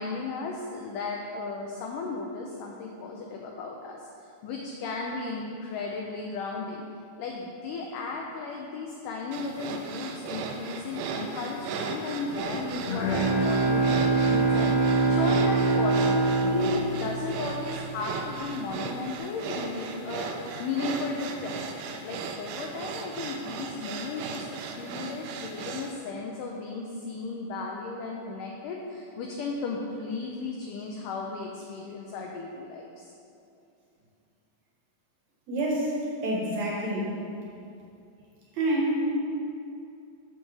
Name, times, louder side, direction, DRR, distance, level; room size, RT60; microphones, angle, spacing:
voice 1, 0.0-6.8 7.2-21.6 22.0-33.1, left 4 dB, 75° left, 0 dB, 2.1 m, -35 dB
sound 1, 9.3-25.9, right 5 dB, 85° right, 2.5 m, -36 dB
Bowed string instrument, 12.5-18.0, right 3 dB, 55° left, 2.0 m, -24 dB
voice 2, 35.5-35.9 36.2-37.1 38.6-39.1, right 1 dB, 60° right, -4 dB, 2.3 m, -27 dB
12.5 x 6.9 x 3.4 m, 2.6 s
omnidirectional pair, 4.2 m